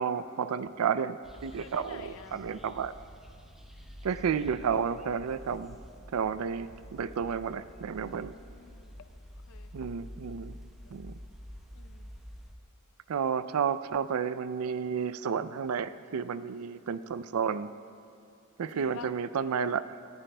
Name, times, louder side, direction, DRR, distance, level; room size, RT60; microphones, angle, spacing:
voice 1, 0.0-2.9 4.0-5.8 6.1-8.3 9.7-10.5 10.9-11.2 13.1-17.7 18.6-20.0, right 6 dB, 85° right, 15 dB, 0.4 m, -31 dB
sound 1, 1.2-12.6, equal, ahead, 0.8 m, -48 dB
voice 2, 1.6-2.4 8.0-9.7 10.2-11.0 11.7-12.1 18.7-19.1, left 6 dB, 70° left, 9 dB, 0.6 m, -51 dB
19.5 x 14.0 x 2.2 m, 2.6 s
head